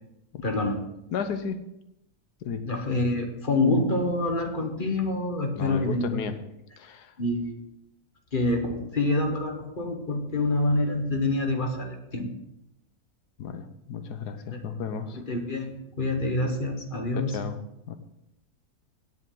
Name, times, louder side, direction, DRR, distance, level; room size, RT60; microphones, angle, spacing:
voice 1, 0.4-0.8 2.6-6.2 7.2-7.6 8.3-12.3 14.5-14.6 15.1-17.4, left 2 dB, 35° left, 4 dB, 1.4 m, -27 dB
voice 2, 1.1-1.6 2.4-2.7 5.6-6.3 6.8-7.1 13.4-15.2 17.2-17.6 17.9-18.0, left 6 dB, 85° left, 10 dB, 1.4 m, -33 dB
17.0 x 7.6 x 3.9 m, 0.83 s
omnidirectional pair, 1.7 m